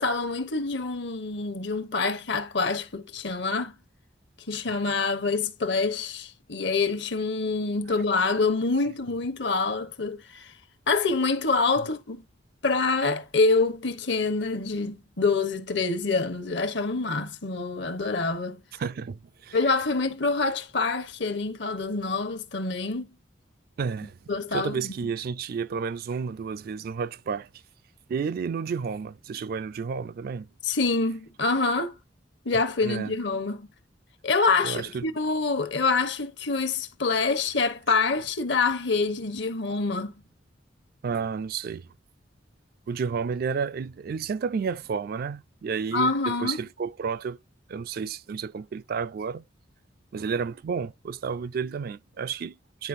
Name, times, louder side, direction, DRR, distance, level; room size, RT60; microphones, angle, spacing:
voice 1, 0.0-3.7 4.5-10.5 10.9-12.2 12.6-18.6 19.5-23.1 24.3-24.9 30.6-31.9 32.4-33.7 34.2-40.1 45.9-46.6, left 3 dB, 65° left, 1.0 m, -26 dB
voice 2, 18.7-19.6 23.8-27.5 28.1-30.5 32.8-33.2 34.6-35.1 41.0-41.9 42.9-47.4 47.7-49.5 50.1-52.9, right 5 dB, 50° right, 0.3 m, -31 dB
10.0 x 4.3 x 2.6 m
head